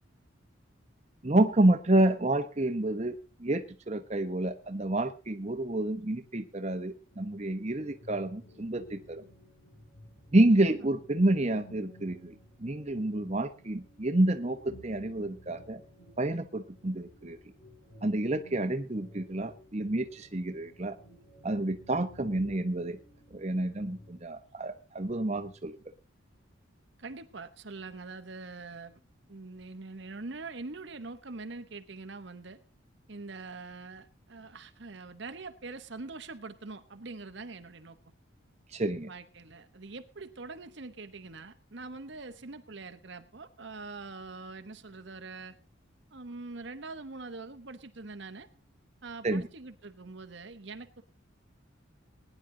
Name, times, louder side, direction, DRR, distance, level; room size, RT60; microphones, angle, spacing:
voice 1, 1.2-9.2 10.3-12.3 12.6-15.8 16.2-17.4 18.0-21.0 21.4-23.0 23.3-25.8 38.7-39.1 49.2-49.5, right 1 dB, 30° right, 1.0 m, -29 dB
sound 1, 7.1-24.2, equal, 75° left, 6.6 m, -55 dB
voice 2, 27.0-29.0 29.3-32.6 33.1-38.0 39.1-45.5 46.1-48.5 49.0-51.0, right 3 dB, 60° right, 1.0 m, -44 dB
20.0 x 10.0 x 3.8 m
head